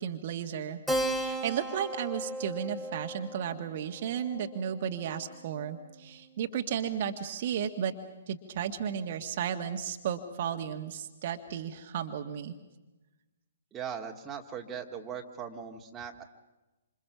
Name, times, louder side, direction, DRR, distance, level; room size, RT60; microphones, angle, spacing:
voice 1, 0.0-7.9 8.3-12.5, right 8 dB, 40° right, 5 dB, 1.7 m, -34 dB
Keyboard (musical), 0.9-5.8, right 1 dB, ahead, 2.4 m, -36 dB
voice 2, 13.7-16.2, right 7 dB, 15° right, 2 dB, 2.0 m, -39 dB
27.5 x 27.0 x 5.9 m, 1.1 s
figure-of-eight pair, 125°, 0 cm